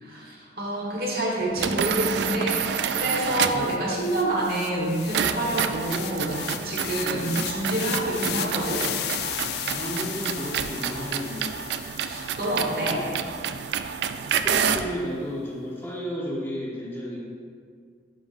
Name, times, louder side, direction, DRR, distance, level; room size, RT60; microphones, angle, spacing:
voice 1, 0.0-8.8 12.0-13.1, right 1 dB, 55° right, -4 dB, 1.4 m, -27 dB
sound 1, 1.6-3.7 5.1-14.9, right 8 dB, 75° right, 0.3 m, -29 dB
sound 2, 2.3-2.4 2.7-13.0, left 11 dB, 65° left, 0.3 m, -36 dB
voice 2, 7.0-7.3 9.7-11.4 14.4-17.2, equal, 15° left, -6 dB, 1.0 m, -32 dB
9.4 x 5.3 x 2.6 m, 2.1 s
head